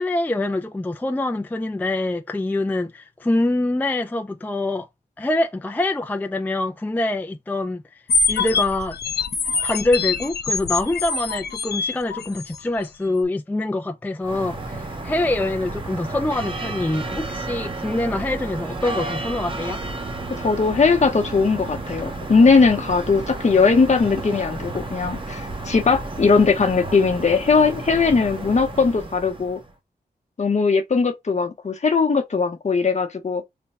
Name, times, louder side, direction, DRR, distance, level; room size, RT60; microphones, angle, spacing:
voice 1, 0.0-4.9 5.2-7.8 8.3-9.0 9.6-19.8, left 2 dB, 10° left, 0.4 m, -25 dB
sound 1, 8.1-12.6, left 4 dB, 75° left, 0.5 m, -24 dB
sound 2, 14.2-29.7, right 2 dB, 30° right, 0.9 m, -32 dB
voice 2, 20.3-29.6 30.4-33.4, left 4 dB, 45° left, 0.8 m, -19 dB
3.4 x 2.2 x 4.1 m
wide cardioid pair, 115°, 17 cm